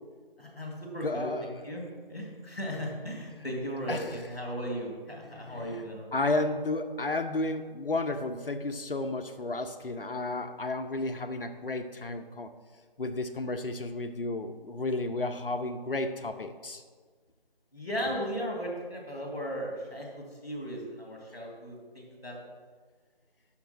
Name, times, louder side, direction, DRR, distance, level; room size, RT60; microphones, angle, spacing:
voice 1, 0.4-1.8 2.1-6.4 17.7-22.4, equal, 5° right, -17 dB, 1.0 m, -36 dB
voice 2, 1.0-1.5 3.3-3.4 3.9-4.2 5.2-5.8 6.1-12.5 13.0-16.8, left 2 dB, 65° left, 6 dB, 0.7 m, -32 dB
6.1 x 5.9 x 5.9 m, 1.5 s
figure-of-eight pair, 165°, 30 cm